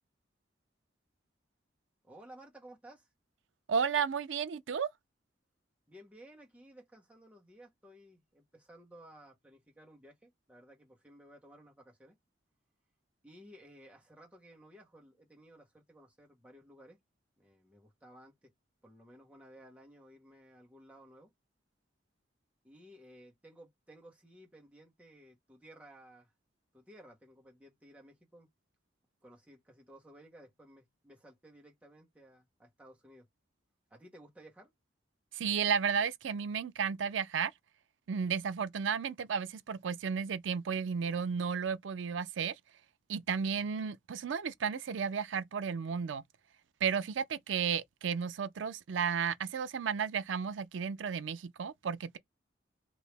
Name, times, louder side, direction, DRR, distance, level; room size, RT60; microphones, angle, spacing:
voice 1, 2.0-3.1 5.9-12.2 13.2-17.0 17.4-18.5 18.8-21.3 22.6-26.3 26.7-28.5 29.2-33.3 33.9-34.7, right 1 dB, 5° right, 1.1 m, -56 dB
voice 2, 3.7-4.9 35.3-37.5 38.1-42.5 43.1-46.2 46.8-52.2, right 6 dB, 85° right, 0.4 m, -33 dB
3.0 x 2.7 x 3.3 m
head